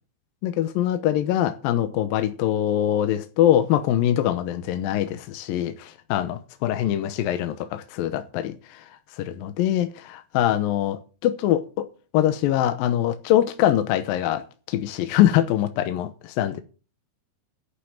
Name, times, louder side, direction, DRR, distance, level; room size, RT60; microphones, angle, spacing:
voice 1, 0.4-8.9 9.2-11.9 12.1-16.6, left 12 dB, 80° left, 2.5 m, -23 dB
11.5 x 6.6 x 8.7 m
omnidirectional pair, 4.3 m